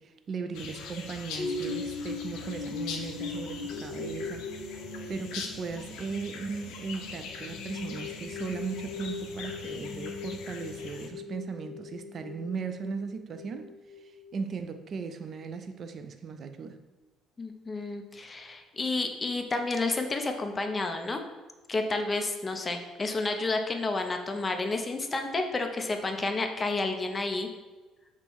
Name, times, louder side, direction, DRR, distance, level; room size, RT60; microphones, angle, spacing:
voice 1, 0.0-16.8, right 5 dB, 40° right, 0.4 m, -38 dB
sound 1, 0.5-11.1, left 5 dB, 75° left, 0.5 m, -42 dB
sound 2, 1.4-14.9 15.4-15.5, left 3 dB, 60° left, 0.9 m, -40 dB
voice 2, 17.4-21.2 21.7-27.5, left 3 dB, 20° left, 0.5 m, -30 dB
5.3 x 2.0 x 4.5 m
cardioid pair, 120°, 0 cm